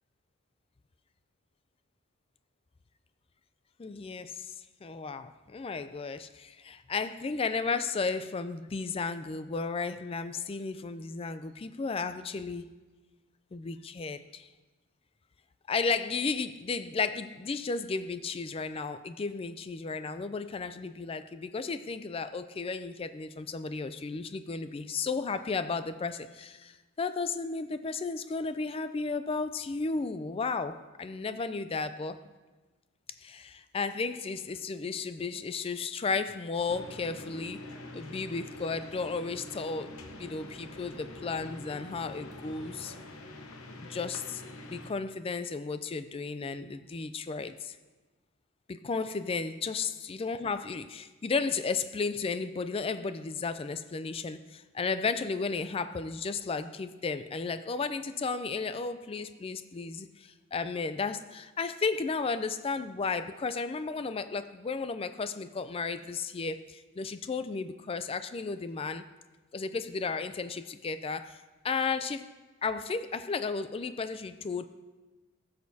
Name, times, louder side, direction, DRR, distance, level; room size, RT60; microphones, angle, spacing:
voice 1, 3.8-4.5 4.8-12.7 13.5-14.5 15.7-32.2 33.2-37.7 37.9-42.9 43.8-47.8 48.7-69.0 69.5-72.3 72.6-74.7, left 4 dB, 25° left, 11 dB, 0.3 m, -34 dB
sound 1, 36.7-44.9, left 1 dB, 80° left, 0.9 m, -45 dB
17.0 x 6.5 x 2.7 m, 1.2 s
head